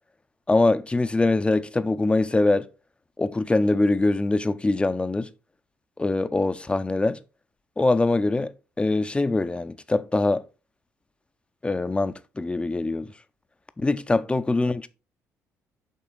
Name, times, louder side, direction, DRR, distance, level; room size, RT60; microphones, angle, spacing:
voice 1, 0.5-2.7 3.2-5.3 6.0-7.2 7.8-8.5 8.8-10.4 11.6-13.1 13.8-14.9, left 2 dB, 15° left, 0.5 m, -23 dB
9.0 x 3.7 x 3.9 m
figure-of-eight pair, 50°, 8 cm